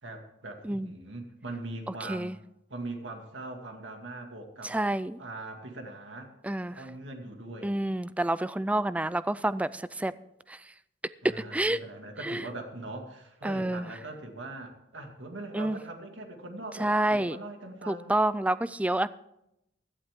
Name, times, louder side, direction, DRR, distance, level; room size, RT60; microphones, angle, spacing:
voice 1, 0.0-2.4 2.7-4.8 5.2-6.3 6.7-7.8 11.2-18.2, right 2 dB, 90° right, 4 dB, 2.1 m, -41 dB
voice 2, 4.6-5.2 6.4-6.8 7.6-10.1 10.5-10.6 11.5-11.8 12.2-12.4 13.4-13.9 15.5-15.8 16.8-17.4 17.9-19.1, right 1 dB, 5° right, 16 dB, 0.3 m, -28 dB
16.0 x 11.5 x 3.7 m, 0.82 s
head